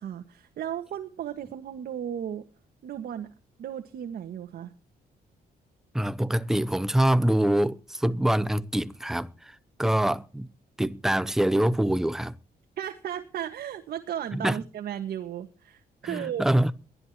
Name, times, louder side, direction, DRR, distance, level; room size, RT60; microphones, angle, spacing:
voice 1, 0.0-2.4 2.8-3.3 3.6-4.7 12.8-16.5, right 10 dB, 70° right, 1.7 m, -35 dB
voice 2, 5.9-9.5 9.8-10.5 10.8-12.4 14.3-14.6 16.0-16.7, right 1 dB, 5° right, 0.6 m, -25 dB
22.0 x 13.0 x 3.0 m
wide cardioid pair, 175°, 16 cm